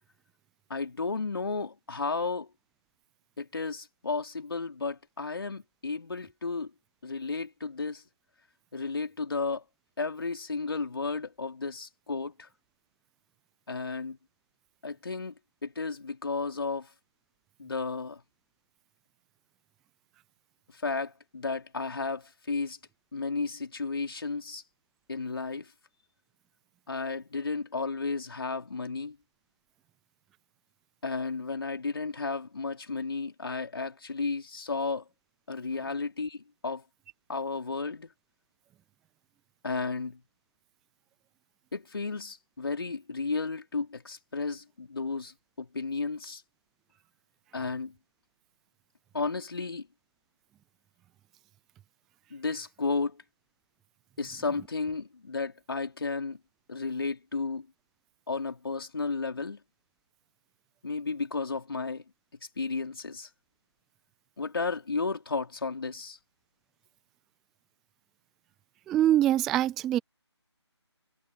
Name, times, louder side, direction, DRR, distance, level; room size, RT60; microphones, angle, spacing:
voice 1, 0.7-2.5 3.4-6.7 7.0-8.0 8.7-9.6 10.0-12.5 13.7-14.2 14.8-15.3 15.6-16.9 17.6-18.2 20.8-22.8 23.1-24.6 25.1-25.7 26.9-29.2 31.0-35.0 35.5-36.8 37.3-38.1 39.6-40.2 41.7-46.4 47.5-48.0 49.1-49.9 52.3-53.2 54.2-56.4 56.7-57.7 58.3-59.6 60.8-62.0 62.6-63.3 64.4-66.2, left 4 dB, 55° left, 4.4 m, -33 dB
voice 2, 68.9-70.0, right 12 dB, ahead, 0.3 m, -24 dB
figure-of-eight pair, 155°, 15 cm